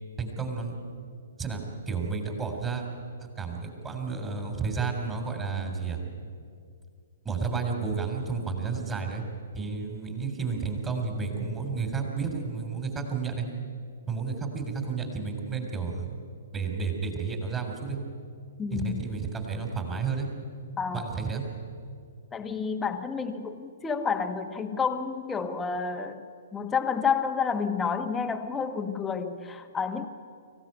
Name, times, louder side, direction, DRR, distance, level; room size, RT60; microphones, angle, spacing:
voice 1, 0.2-0.7 1.4-2.8 3.4-6.0 7.2-9.2 9.5-13.5 14.1-16.1 16.5-18.0 18.7-20.3 20.9-21.4, right 5 dB, 15° right, 3 dB, 3.7 m, -31 dB
voice 2, 18.6-19.1 20.8-21.1 22.3-26.2 26.5-30.1, left 6 dB, 10° left, 5 dB, 1.5 m, -30 dB
25.0 x 16.0 x 9.1 m, 2.3 s
figure-of-eight pair, 120°, 0 cm